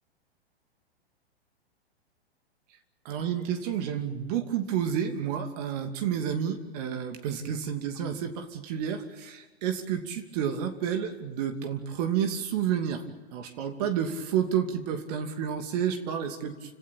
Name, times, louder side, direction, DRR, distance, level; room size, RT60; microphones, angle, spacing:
voice 1, 3.0-13.0 13.3-16.7, right 8 dB, 40° right, 5 dB, 2.8 m, -30 dB
29.5 x 18.0 x 8.9 m, 1.2 s
figure-of-eight pair, 110°, 31 cm